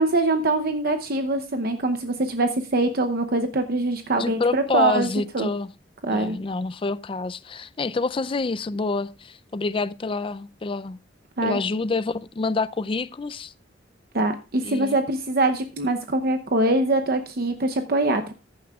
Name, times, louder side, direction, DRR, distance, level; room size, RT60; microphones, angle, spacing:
voice 1, 0.0-5.1 5.3-5.5 6.0-6.4 11.4-11.6 14.1-18.3, right 2 dB, 55° right, 0.8 m, -23 dB
voice 2, 4.2-5.7 6.1-11.0 11.4-13.5 14.6-15.0, left 3 dB, 30° left, 0.4 m, -27 dB
14.5 x 10.5 x 2.4 m
head